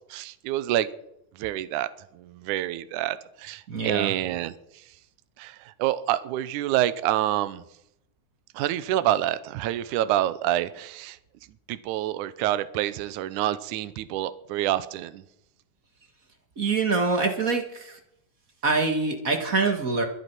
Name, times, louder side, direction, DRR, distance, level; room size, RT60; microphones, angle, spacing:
voice 1, 0.1-0.9 1.4-1.9 2.2-4.6 5.4-7.6 8.5-11.2 11.7-15.2, right 13 dB, 75° right, 14 dB, 2.1 m, -27 dB
voice 2, 3.7-4.1 16.6-18.0 18.6-20.0, right 4 dB, 40° right, 5 dB, 1.3 m, -25 dB
23.0 x 8.4 x 6.0 m, 0.79 s
omnidirectional pair, 3.8 m